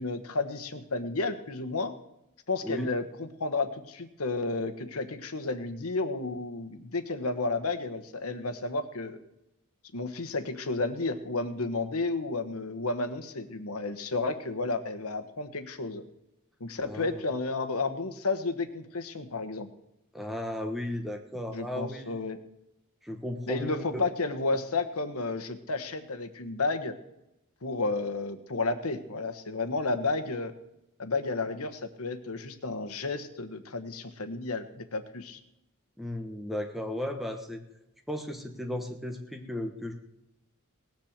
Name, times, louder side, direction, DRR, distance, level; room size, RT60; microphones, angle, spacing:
voice 1, 0.0-1.9 2.5-9.2 9.9-16.0 16.6-19.7 21.5-22.4 23.5-26.9 27.6-30.5 31.0-35.4, left 3 dB, 80° left, 10 dB, 1.2 m, -32 dB
voice 2, 16.8-17.2 20.1-22.3 23.0-23.8 36.0-37.6 38.1-39.9, left 1 dB, ahead, 4 dB, 1.3 m, -35 dB
18.5 x 7.5 x 7.4 m, 0.87 s
head